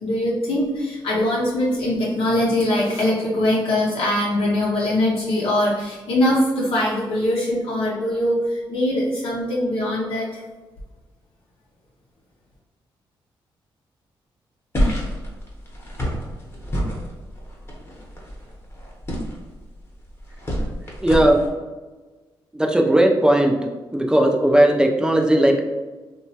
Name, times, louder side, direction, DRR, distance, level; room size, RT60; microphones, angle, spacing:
voice 1, 0.0-10.4, left 1 dB, 80° left, -5 dB, 0.6 m, -22 dB
sound 1, 14.7-21.5, equal, 25° left, 0.8 m, -28 dB
voice 2, 21.0-21.4 22.5-23.5 23.9-25.7, right 1 dB, 10° right, 1 dB, 0.4 m, -17 dB
2.8 x 2.2 x 2.7 m, 1.3 s
cardioid pair, 85°, 9 cm